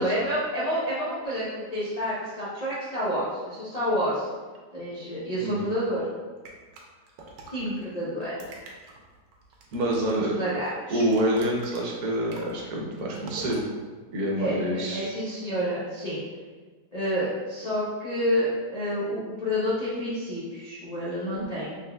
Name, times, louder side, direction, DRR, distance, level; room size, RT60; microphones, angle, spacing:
voice 1, 0.0-4.3 4.7-6.1 7.5-8.4 10.3-11.0 14.4-16.2 16.9-21.8, equal, 55° left, -9 dB, 0.4 m, -29 dB
sound 1, 6.4-7.8 8.2-10.3 10.6-13.6, right 3 dB, 85° right, 1.3 m, -45 dB
voice 2, 9.7-10.4 10.9-13.6 14.1-15.1, right 1 dB, 70° right, -2 dB, 1.1 m, -27 dB
4.0 x 3.4 x 2.2 m, 1.4 s
omnidirectional pair, 1.8 m